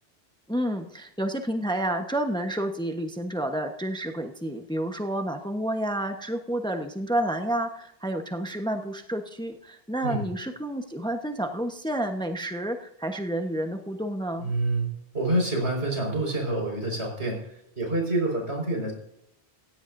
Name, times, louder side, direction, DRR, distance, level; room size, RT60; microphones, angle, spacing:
voice 1, 0.5-14.5, right 1 dB, 5° left, 5 dB, 1.1 m, -30 dB
voice 2, 14.4-17.4 17.8-18.9, right 2 dB, 85° right, 0 dB, 5.6 m, -27 dB
17.0 x 16.0 x 2.7 m, 0.76 s
omnidirectional pair, 1.1 m